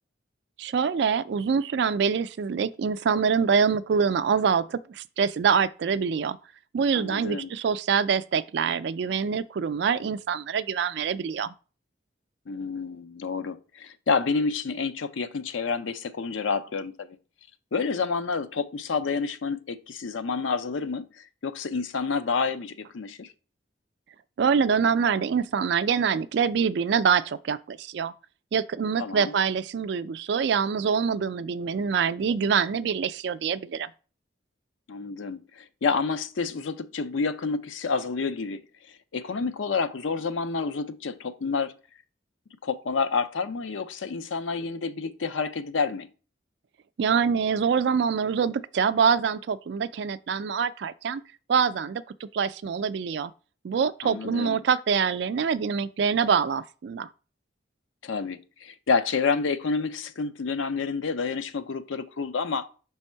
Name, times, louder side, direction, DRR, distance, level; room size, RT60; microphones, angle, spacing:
voice 1, 0.6-6.4 6.7-11.5 24.4-28.1 28.5-33.9 47.0-51.2 51.5-53.3 53.6-57.1, right 6 dB, 65° right, 0.3 m, -25 dB
voice 2, 6.9-7.5 12.5-17.2 17.7-23.3 29.0-29.3 34.9-38.6 39.1-41.7 42.6-46.1 54.0-54.6 58.0-62.7, left 4 dB, 90° left, 0.5 m, -29 dB
5.2 x 3.5 x 5.5 m
head